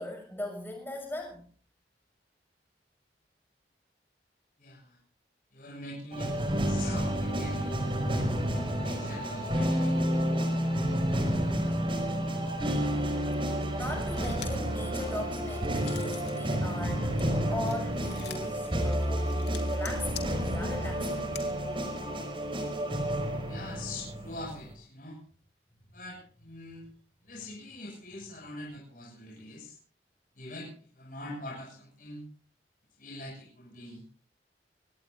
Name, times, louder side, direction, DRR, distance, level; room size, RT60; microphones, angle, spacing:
voice 1, 0.0-1.5 12.8-13.1 13.7-17.2 17.5-21.2, left 1 dB, 10° left, 3 dB, 6.7 m, -39 dB
voice 2, 4.6-5.0 5.5-6.3 6.6-8.0 8.8-10.0 23.5-25.2 25.9-26.9 27.2-29.8 30.4-32.3 33.0-34.0, left 2 dB, 50° left, -2 dB, 6.9 m, -43 dB
sound 1, 6.1-24.7, equal, 30° right, 5.2 m, -30 dB
sound 2, 14.0-14.7 15.1-16.4 16.7-21.4, left 10 dB, 75° left, 3.3 m, -46 dB
24.5 x 19.0 x 2.7 m, 0.42 s
head